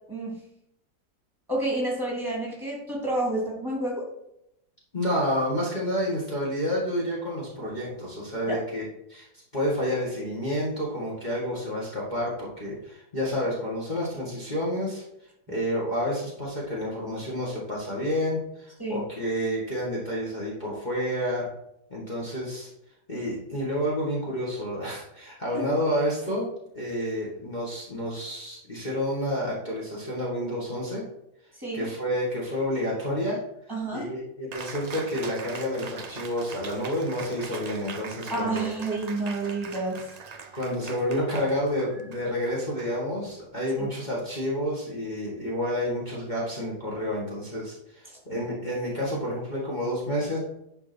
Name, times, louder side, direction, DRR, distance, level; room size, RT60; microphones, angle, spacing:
voice 1, 1.5-4.0 8.5-8.6 18.8-19.0 25.5-25.7 31.6-31.9 33.7-34.1 38.3-40.0 43.8-43.9, right 2 dB, 15° right, -3 dB, 2.9 m, -29 dB
voice 2, 4.9-9.3 9.5-15.0 15.5-21.5 21.9-22.7 23.1-26.5 26.7-31.0 31.7-33.4 33.9-38.6 40.6-50.4, equal, 25° left, -6 dB, 2.1 m, -29 dB
Cheering, 34.5-43.5, right 5 dB, 75° right, 0.3 m, -42 dB
10.5 x 5.3 x 4.4 m, 0.79 s
omnidirectional pair, 1.7 m